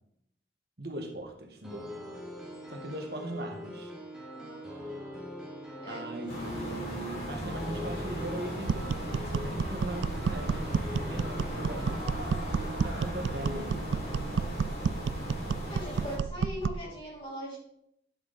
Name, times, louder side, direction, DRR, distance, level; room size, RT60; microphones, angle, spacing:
voice 1, 0.8-1.9 2.7-3.9 5.9-12.1 12.6-14.5, right 1 dB, 60° right, 3 dB, 1.5 m, -40 dB
sound 1, 1.6-13.6, equal, 5° right, 2.1 m, -43 dB
voice 2, 4.3-4.9 5.8-6.2 6.7-7.1 15.7-17.6, equal, 30° left, -6 dB, 4.0 m, -41 dB
sound 2, 6.3-16.2, equal, 60° left, 4.4 m, -37 dB
sound 3, 8.7-16.9, right 5 dB, 85° right, 0.3 m, -31 dB
10.5 x 6.9 x 4.1 m, 0.75 s
head